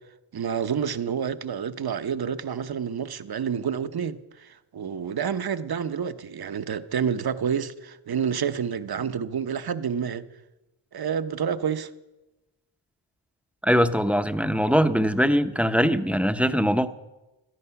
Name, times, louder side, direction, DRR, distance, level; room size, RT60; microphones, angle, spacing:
voice 1, 0.3-10.3 10.9-11.9, right 7 dB, 50° right, 0.9 m, -29 dB
voice 2, 13.6-16.9, equal, 5° right, 0.7 m, -22 dB
18.0 x 13.0 x 5.8 m
wide cardioid pair, 105°, 47 cm